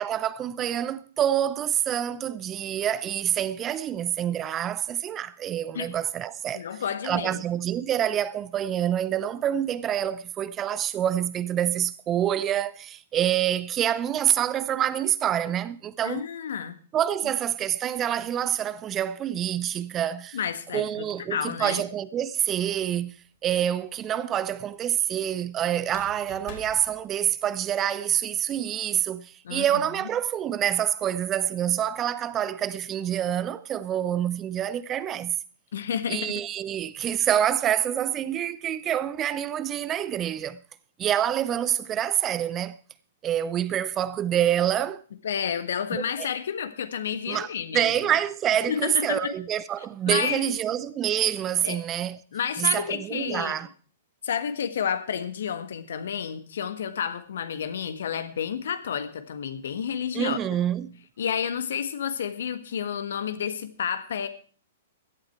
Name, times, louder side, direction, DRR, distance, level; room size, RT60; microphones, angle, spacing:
voice 1, 0.0-6.6 7.0-16.2 16.9-20.4 20.7-23.1 23.4-35.3 36.1-40.6 41.0-42.8 43.2-45.0 45.9-46.0 47.3-47.5 47.7-52.2 52.6-53.7 60.1-60.9, right 10 dB, 25° right, 0.6 m, -27 dB
voice 2, 6.5-7.4 16.0-16.7 20.3-21.8 29.4-29.9 35.7-36.3 45.2-48.0 48.7-49.0 50.1-50.5 51.6-51.8 52.3-53.6 54.2-60.4 61.2-64.3, left 8 dB, 60° left, 1.5 m, -30 dB
sound 1, 22.7-23.4 25.8-27.8, left 4 dB, 40° left, 4.7 m, -47 dB
16.0 x 11.5 x 4.6 m
figure-of-eight pair, 110°, 0 cm